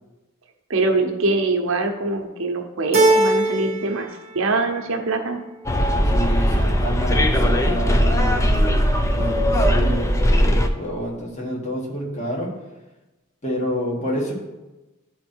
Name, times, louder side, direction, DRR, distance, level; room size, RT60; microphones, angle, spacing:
voice 1, 0.7-4.1 4.3-5.4, right 3 dB, 65° right, 4 dB, 0.8 m, -23 dB
Keyboard (musical), 2.9-4.0 4.4-5.1, right 1 dB, 30° right, 0.8 m, -20 dB
Bus, 5.7-10.7, equal, 15° left, 0.5 m, -19 dB
voice 2, 6.0-8.6 9.1-12.5 13.4-14.3, equal, 35° left, -2 dB, 1.7 m, -28 dB
11.5 x 3.9 x 4.5 m, 1.1 s
head